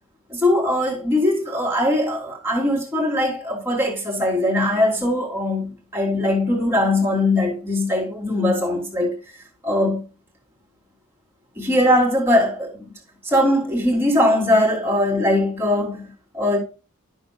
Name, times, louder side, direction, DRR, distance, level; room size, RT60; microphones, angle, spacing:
voice 1, 0.3-9.2 9.6-10.0 11.6-12.9 13.2-16.6, left 1 dB, 10° right, 3.0 m, -21 dB
13.0 x 6.5 x 2.3 m
head